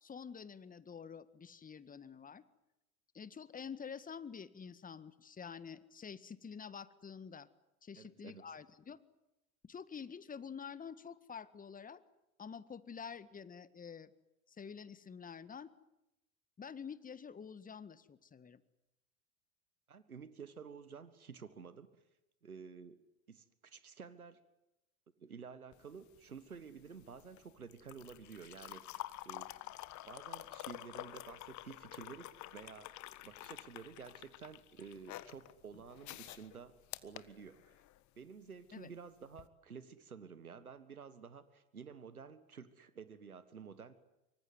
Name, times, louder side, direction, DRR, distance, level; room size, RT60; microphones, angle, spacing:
voice 1, 0.0-2.4 3.1-7.5 7.8-9.0 9.6-12.0 12.4-14.1 14.5-15.7 16.6-18.6 38.7-38.9, left 6 dB, 20° left, 15 dB, 1.7 m, -48 dB
voice 2, 7.9-8.4 19.9-21.9 22.4-23.0 23.3-24.4 25.2-29.5 30.1-37.8 38.2-43.9, right 6 dB, 90° right, 14 dB, 1.6 m, -52 dB
sound 1, 25.7-38.0 39.3-39.5, left 15 dB, 40° left, 1.5 m, -49 dB
26.0 x 24.0 x 9.5 m, 0.92 s
figure-of-eight pair, 80°, 42 cm